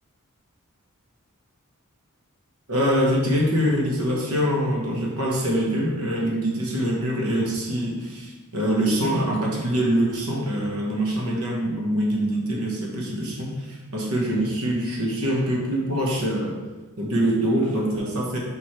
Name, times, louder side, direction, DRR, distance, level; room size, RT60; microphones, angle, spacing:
voice 1, 2.7-16.6 17.0-18.4, equal, 80° right, -2 dB, 1.3 m, -24 dB
5.2 x 4.8 x 4.4 m, 1.2 s
head